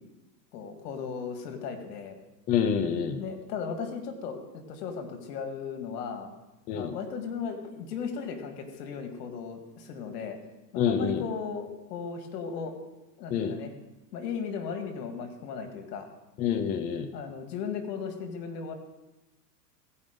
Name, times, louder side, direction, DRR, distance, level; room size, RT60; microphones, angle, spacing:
voice 1, 0.5-2.2 3.2-6.3 6.7-10.4 10.7-12.7 13.2-13.7 14.1-16.1 17.1-18.7, left 6 dB, 65° left, 6 dB, 2.0 m, -36 dB
voice 2, 2.5-3.2 6.7-6.9 10.8-11.2 13.3-13.6 16.4-17.1, left 8 dB, 20° left, 7 dB, 0.4 m, -27 dB
16.0 x 5.4 x 5.2 m, 1.0 s
hypercardioid pair, 120°, 50 cm